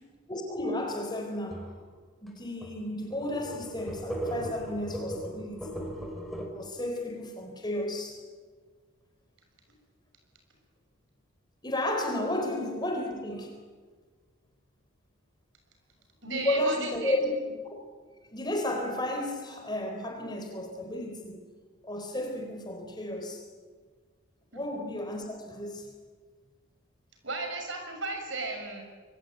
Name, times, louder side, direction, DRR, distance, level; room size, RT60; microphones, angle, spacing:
voice 1, 0.3-1.7 2.2-5.8 6.5-8.2 11.6-13.5 16.2-17.4 18.3-21.4 21.8-23.4 24.5-25.9, left 1 dB, 20° left, 4.0 m, -33 dB
sound 1, 1.5-1.8 2.3-2.4 2.6-2.8 3.1-6.5, right 1 dB, ahead, 4.5 m, -37 dB
voice 2, 16.2-17.1 27.2-28.8, right 3 dB, 60° right, 6.8 m, -34 dB
26.5 x 23.0 x 9.3 m
head